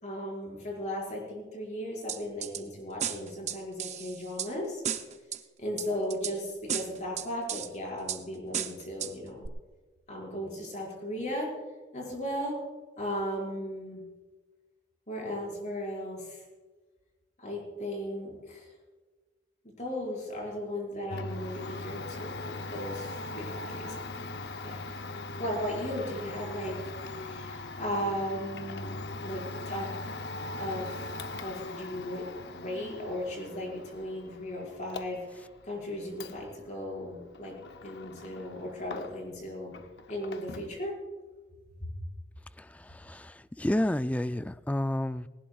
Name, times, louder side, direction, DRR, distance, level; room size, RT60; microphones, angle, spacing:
voice 1, 0.0-4.8 5.6-9.4 10.1-11.5 11.9-12.6 13.0-14.0 15.1-16.4 17.4-18.7 19.6-24.3 24.6-24.9 25.4-29.9 30.6-31.1 31.4-32.2 32.5-37.6 37.8-39.7 40.1-40.9 41.8-41.9, equal, 40° left, -2 dB, 5.2 m, -36 dB
sound 1, 2.1-2.6 3.0-4.5 4.8-5.4 5.8-6.3 6.7-7.7 8.1-8.2 8.5-9.1 9.4-9.5, right 9 dB, 40° right, 0.6 m, -34 dB
Domestic sounds home sounds, 21.1-39.4 39.7-40.8, left 2 dB, 65° left, 0.7 m, -41 dB
voice 2, 42.6-45.3, left 1 dB, 10° left, 13 dB, 0.3 m, -31 dB
19.5 x 18.5 x 2.4 m, 1.3 s
head